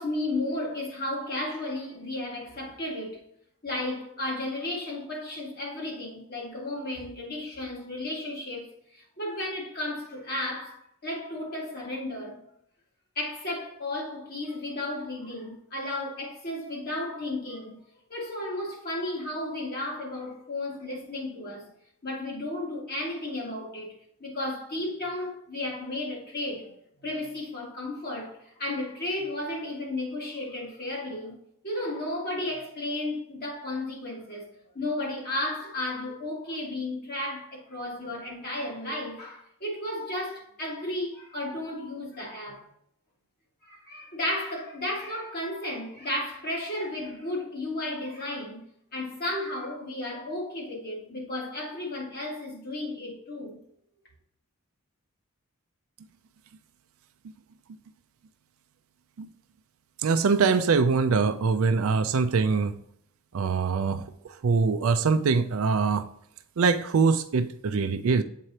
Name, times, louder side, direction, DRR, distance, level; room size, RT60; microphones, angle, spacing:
voice 1, 0.0-3.2 3.6-8.7 8.9-12.4 13.2-17.8 18.1-21.7 22.0-23.9 24.2-34.5 34.7-42.6 43.6-53.6, left 1 dB, 45° left, 2.0 m, -33 dB
voice 2, 60.0-62.7 63.3-66.0 66.6-68.2, right 4 dB, 75° right, 0.4 m, -23 dB
7.6 x 4.8 x 2.9 m
head